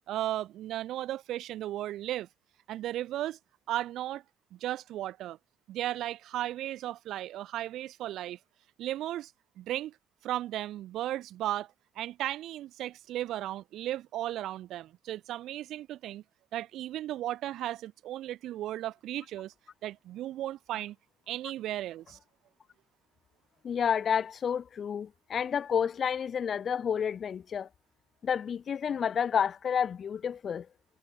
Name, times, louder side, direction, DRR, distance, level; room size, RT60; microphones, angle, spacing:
voice 1, 0.1-2.3 2.7-3.4 3.7-4.2 4.5-5.4 5.7-8.4 8.8-9.3 9.6-9.9 10.2-11.7 12.0-16.2 16.5-19.5 19.8-21.0 21.3-22.2, right 13 dB, 85° right, 1.0 m, -35 dB
voice 2, 23.6-27.7 28.2-30.7, left 7 dB, 55° left, 0.7 m, -30 dB
cardioid pair, 90°, 0 cm